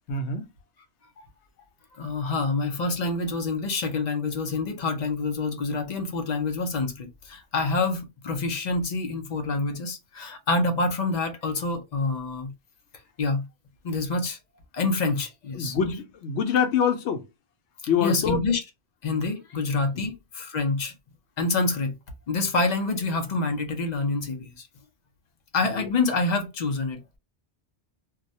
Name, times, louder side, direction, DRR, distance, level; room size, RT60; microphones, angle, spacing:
voice 1, 0.1-0.5 15.5-17.2 17.9-18.4 20.0-20.1 25.8-25.9, left 7 dB, 85° left, 0.9 m, -25 dB
voice 2, 2.0-12.5 13.2-13.4 13.8-14.4 14.7-15.7 18.0-18.6 19.0-20.9 21.4-21.9 22.3-24.7 25.5-27.0, left 3 dB, 50° left, 0.5 m, -27 dB
2.3 x 2.1 x 2.6 m
omnidirectional pair, 1.1 m